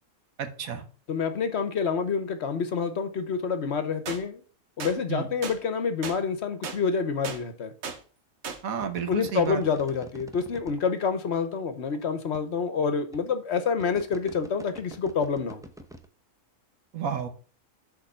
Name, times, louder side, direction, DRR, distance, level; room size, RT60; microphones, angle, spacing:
voice 1, 0.4-0.8 5.1-5.3 8.6-9.6 16.9-17.3, right 7 dB, 85° right, 8 dB, 1.5 m, -31 dB
voice 2, 1.1-4.4 4.8-7.7 9.1-15.6, left 5 dB, 55° left, 9 dB, 1.0 m, -27 dB
sound 1, 4.1-4.2 4.8-5.0 5.4-5.6 6.0-6.2 6.6-6.8 7.2-7.4 7.8-8.0 8.4-8.6, right 5 dB, 55° right, 1.1 m, -35 dB
sound 2, 8.8-10.9 11.9-12.0 12.3-12.4 13.1-13.3 13.8-16.1, equal, 5° right, 0.4 m, -45 dB
6.5 x 4.3 x 5.4 m, 0.38 s
omnidirectional pair, 1.4 m